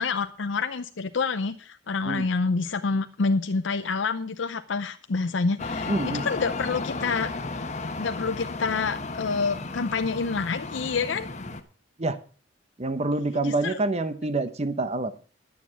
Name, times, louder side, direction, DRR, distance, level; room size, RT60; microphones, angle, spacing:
voice 1, 0.0-5.9 6.2-7.3 8.0-11.3 13.4-13.8, left 4 dB, 75° left, 8 dB, 0.6 m, -27 dB
sound 1, 5.6-11.6, left 3 dB, 40° left, 1.2 m, -34 dB
voice 2, 5.9-6.3 12.0-12.2 12.8-15.1, right 2 dB, 35° right, 12 dB, 1.0 m, -27 dB
11.0 x 9.3 x 5.7 m, 0.38 s
head